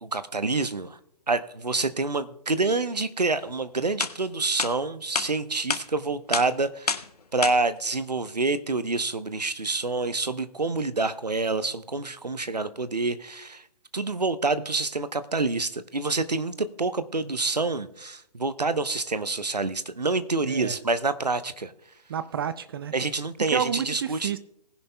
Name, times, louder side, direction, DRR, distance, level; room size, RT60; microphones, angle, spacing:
voice 1, 0.0-1.0 1.3-7.0 7.3-13.6 13.9-21.7 22.9-24.3, right 3 dB, 85° right, 13 dB, 0.9 m, -27 dB
sound 1, 3.5-3.6 4.0-4.1 4.6-4.7 5.1-5.3 5.7-5.8 6.3-6.5 6.9-7.1 7.4-7.5, left 5 dB, 75° left, 0.9 m, -27 dB
voice 2, 20.5-20.8 22.1-22.9 23.5-24.4, right 8 dB, 35° right, 14 dB, 0.5 m, -30 dB
19.5 x 10.5 x 2.3 m, 0.76 s
figure-of-eight pair, 135°, 20 cm